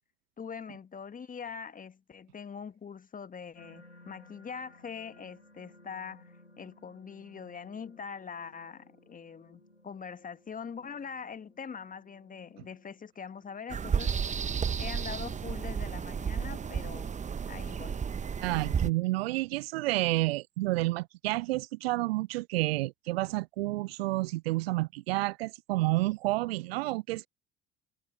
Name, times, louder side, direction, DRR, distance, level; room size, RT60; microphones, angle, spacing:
voice 1, 0.4-14.5 14.8-17.1 17.5-18.0, left 6 dB, 25° left, 1.5 m, -43 dB
sound 1, 3.5-18.7 19.3-19.7, left 1 dB, 90° left, 4.8 m, -61 dB
sound 2, 13.7-18.9, right 6 dB, 20° right, 0.9 m, -32 dB
voice 2, 18.4-27.3, right 20 dB, 65° right, 0.5 m, -30 dB
figure-of-eight pair, 55°, 33 cm